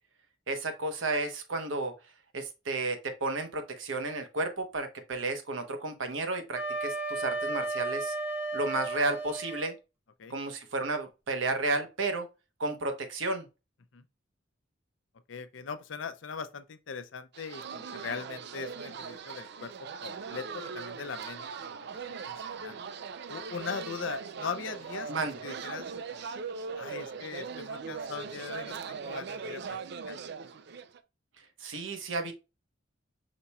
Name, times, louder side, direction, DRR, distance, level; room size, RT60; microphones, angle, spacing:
voice 1, 0.5-1.9 2.3-8.1 8.5-9.8 10.3-12.3 12.6-13.5 25.1-25.4 31.6-32.3, right 2 dB, 85° right, 1.0 m, -32 dB
Wind instrument woodwind instrument, 6.5-9.7, right 2 dB, 10° right, 1.5 m, -34 dB
voice 2, 15.3-19.7 20.0-21.4 21.7-21.9 22.2-22.9 23.3-25.9 26.7-29.8 30.1-30.2, left 5 dB, 75° left, 0.6 m, -40 dB
sound 1, 17.3-31.0, right 5 dB, 60° right, 0.4 m, -40 dB
5.1 x 4.1 x 2.3 m
head